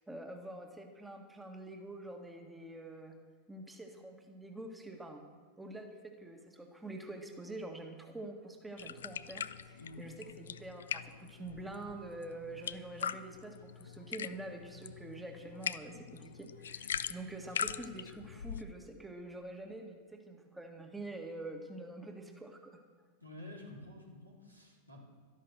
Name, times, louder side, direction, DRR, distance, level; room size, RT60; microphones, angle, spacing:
voice 1, 0.1-3.2 3.5-5.2 5.6-22.8, right 2 dB, 5° right, 4 dB, 1.7 m, -46 dB
sound 1, 8.8-18.7, left 8 dB, 65° left, 0.5 m, -42 dB
voice 2, 23.2-25.0, left 1 dB, 85° right, -2 dB, 3.5 m, -50 dB
12.5 x 11.5 x 6.7 m, 1.5 s
figure-of-eight pair, 90°, 0 cm